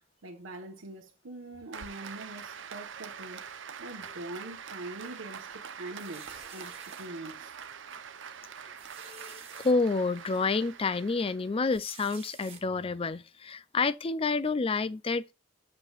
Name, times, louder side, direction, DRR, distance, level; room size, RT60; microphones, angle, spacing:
voice 1, 0.2-3.4 3.8-7.5, right 2 dB, 90° right, 1.2 m, -43 dB
Applause, 1.7-11.8, right 7 dB, 65° right, 0.7 m, -44 dB
sound 1, 6.0-7.1 7.7-7.8 8.1-8.2 8.8-9.7 10.3-10.4 11.7-12.6, right 6 dB, 30° right, 1.5 m, -50 dB
voice 2, 9.0-15.3, left 3 dB, 30° left, 0.4 m, -29 dB
8.6 x 6.7 x 2.4 m
head